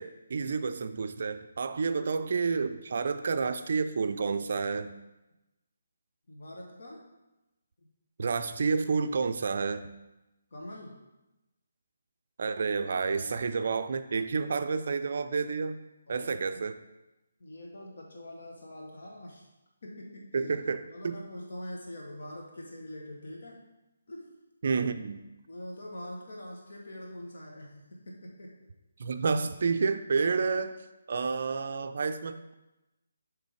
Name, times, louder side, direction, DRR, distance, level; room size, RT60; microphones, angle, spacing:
voice 1, 0.0-4.9 8.2-9.9 12.4-15.8 16.1-16.7 20.3-21.2 24.6-25.2 29.0-30.8 31.1-32.5, right 5 dB, 50° right, 9 dB, 0.4 m, -30 dB
voice 2, 6.3-7.0 10.5-11.0 13.4-13.5 16.1-16.6 17.4-19.5 19.8-20.5 20.9-23.7 24.1-24.4 24.7-24.8 25.5-28.5, left 1 dB, 55° left, -1 dB, 1.2 m, -44 dB
7.5 x 3.3 x 4.9 m, 0.99 s
figure-of-eight pair, 145°, 0 cm